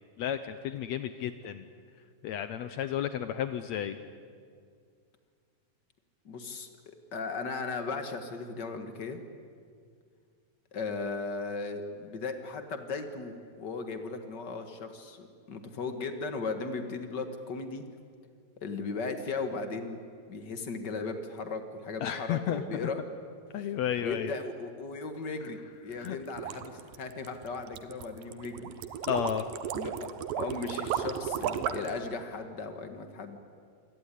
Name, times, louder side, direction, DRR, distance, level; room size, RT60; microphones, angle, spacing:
voice 1, 0.2-1.7 2.2-4.0 22.0-22.6 23.5-24.3 26.0-26.2 29.1-29.5, left 10 dB, 80° left, 11 dB, 1.6 m, -32 dB
voice 2, 6.2-6.7 7.1-9.2 10.7-17.8 18.6-20.0 20.3-23.0 24.0-28.7 29.7-30.1 30.4-33.4, left 4 dB, 50° left, 7 dB, 1.3 m, -37 dB
sound 1, 25.9-32.0, right 9 dB, 80° right, 2.7 m, -34 dB
26.5 x 17.5 x 10.0 m, 2.2 s
omnidirectional pair, 4.1 m